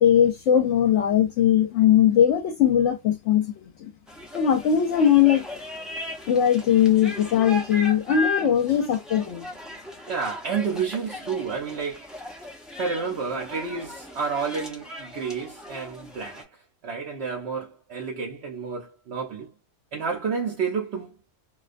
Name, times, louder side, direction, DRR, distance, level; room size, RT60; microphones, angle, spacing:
voice 1, 0.0-3.9 4.3-5.5 6.3-9.4, left 9 dB, 70° left, 0.9 m, -20 dB
sound 1, 4.1-16.4, left 2 dB, ahead, 0.3 m, -37 dB
voice 2, 10.1-12.1 12.8-16.5 16.8-19.5 19.9-21.2, right 5 dB, 65° right, 0.9 m, -30 dB
2.4 x 2.2 x 2.5 m
omnidirectional pair, 1.3 m